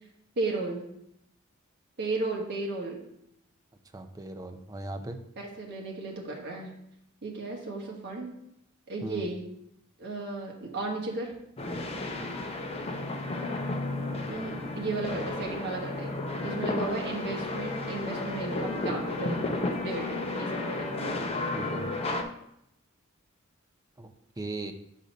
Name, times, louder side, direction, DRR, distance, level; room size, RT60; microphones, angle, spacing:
voice 1, 0.4-0.8 2.0-3.0 5.4-6.7 7.2-8.3 8.9-9.4 10.0-11.3 14.3-16.1 16.4-19.4 19.8-21.2, right 3 dB, 55° right, -1 dB, 1.3 m, -34 dB
voice 2, 3.9-5.2 9.0-9.3 21.5-21.9 24.0-24.7, right 2 dB, 20° right, 7 dB, 0.5 m, -38 dB
sound 1, 11.6-22.2, left 2 dB, 30° left, 0.6 m, -33 dB
6.4 x 4.1 x 5.1 m, 0.78 s
head